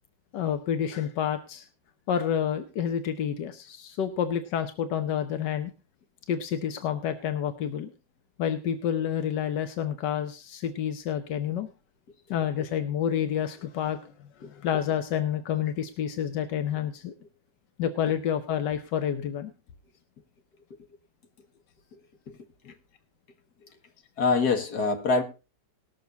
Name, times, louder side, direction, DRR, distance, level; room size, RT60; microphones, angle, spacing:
voice 1, 0.3-1.6 2.1-5.7 6.3-7.9 8.4-11.7 12.3-17.1 17.8-19.5, left 9 dB, 90° left, 9 dB, 1.5 m, -29 dB
voice 2, 24.2-25.2, left 4 dB, 65° left, 5 dB, 2.1 m, -24 dB
19.5 x 6.7 x 3.9 m, 0.30 s
omnidirectional pair, 1.8 m